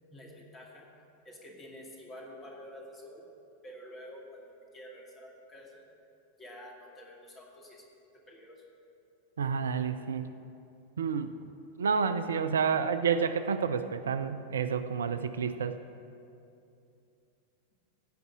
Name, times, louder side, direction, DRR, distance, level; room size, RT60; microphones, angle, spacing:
voice 1, 0.1-0.9 1.2-3.3 3.6-5.8 6.4-7.9 8.3-8.6, equal, 20° left, -1 dB, 2.4 m, -49 dB
voice 2, 9.4-10.3 11.0-11.5 11.8-15.8, right 6 dB, 65° right, 11 dB, 0.4 m, -29 dB
15.5 x 5.4 x 7.6 m, 2.6 s
figure-of-eight pair, 90°, 0 cm